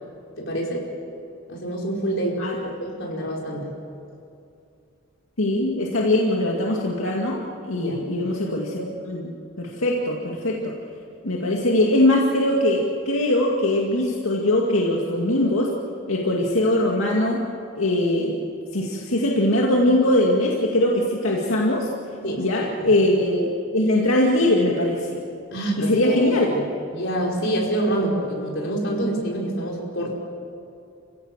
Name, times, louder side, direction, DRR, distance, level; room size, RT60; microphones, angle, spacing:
voice 1, 0.4-0.8 1.5-3.7 7.7-8.0 22.2-22.9 25.5-26.6 26.9-30.1, right 1 dB, 60° left, -2 dB, 5.3 m, -27 dB
voice 2, 5.4-10.7 11.2-15.7 16.1-17.4 17.7-18.3 18.7-21.9 22.4-25.2 25.8-26.5, left 1 dB, 90° left, -2 dB, 2.2 m, -21 dB
29.5 x 16.5 x 7.6 m, 2.5 s
head